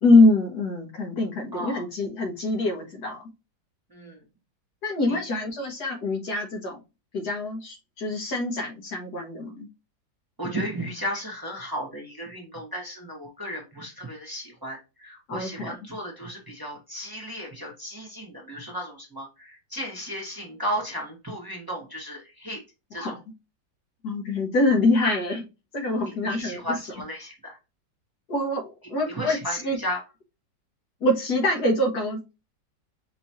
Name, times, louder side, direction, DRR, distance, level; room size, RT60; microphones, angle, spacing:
voice 1, 0.0-3.2 4.8-6.8 7.1-9.7 15.3-15.7 23.0-23.1 24.0-25.4 25.7-26.6 28.3-29.8 31.0-32.3, left 2 dB, 60° left, 2 dB, 1.6 m, -24 dB
voice 2, 1.5-1.8 3.9-4.2 5.1-5.2 10.4-22.6 22.9-23.2 26.0-27.6 29.1-30.0, equal, 15° right, -2 dB, 1.5 m, -34 dB
5.5 x 3.1 x 2.9 m, 0.27 s
omnidirectional pair, 2.0 m